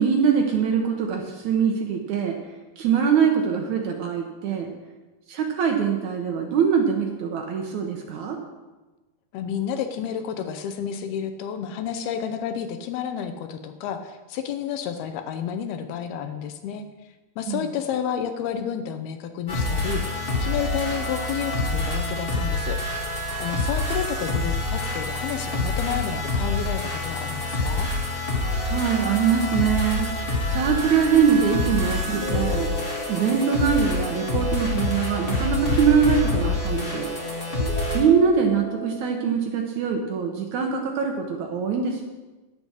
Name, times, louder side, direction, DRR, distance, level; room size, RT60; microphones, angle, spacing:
voice 1, 0.0-2.4 2.8-4.7 5.3-8.4 17.5-17.6 28.6-32.7 33.1-37.1 37.9-42.0, right 6 dB, 75° right, 2 dB, 1.7 m, -23 dB
voice 2, 9.3-16.8 17.4-23.0 23.4-27.9, left 8 dB, 80° left, 8 dB, 2.6 m, -30 dB
sound 1, 19.5-38.0, left 2 dB, 40° left, 0.8 m, -27 dB
sound 2, 28.5-30.1 32.1-35.2 37.6-39.0, left 1 dB, 15° left, 2.2 m, -37 dB
11.0 x 8.9 x 6.4 m, 1.2 s
omnidirectional pair, 4.7 m